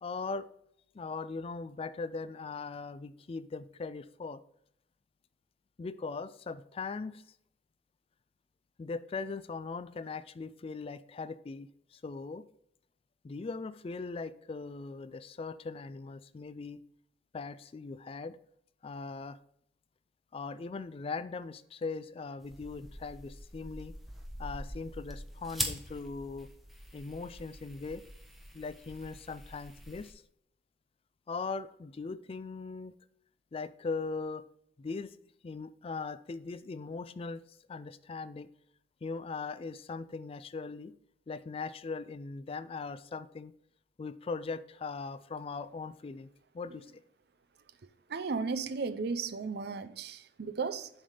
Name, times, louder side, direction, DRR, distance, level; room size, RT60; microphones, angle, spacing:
voice 1, 0.0-0.5 0.9-4.4 5.8-7.2 8.8-12.4 13.2-16.8 17.3-18.4 18.8-19.4 20.3-23.9 24.4-26.5 26.9-28.0 28.5-30.1 31.3-32.9 33.5-34.4 34.8-35.1 35.4-37.4 37.7-38.5 39.0-40.9 41.3-43.5 44.0-46.3 46.5-46.9, left 4 dB, 30° left, 0.3 m, -40 dB
sound 1, 22.4-30.1, equal, ahead, 0.8 m, -43 dB
voice 2, 48.1-50.9, right 4 dB, 60° right, 0.5 m, -35 dB
7.2 x 3.4 x 5.5 m
head